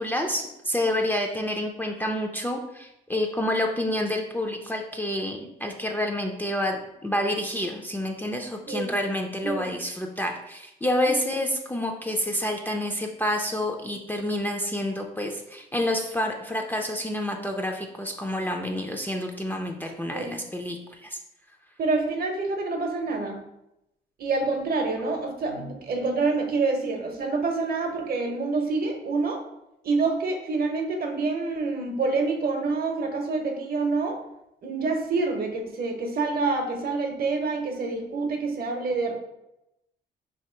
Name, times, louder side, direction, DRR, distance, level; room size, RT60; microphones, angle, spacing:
voice 1, 0.0-21.2, left 1 dB, 10° left, 2 dB, 0.4 m, -28 dB
voice 2, 9.4-9.7 11.1-11.3 20.1-20.4 21.8-23.4 24.2-29.4 29.8-34.2 34.6-39.1, right 3 dB, 50° right, 4 dB, 0.8 m, -27 dB
3.0 x 2.9 x 4.3 m, 0.86 s
cardioid pair, 90°, 20 cm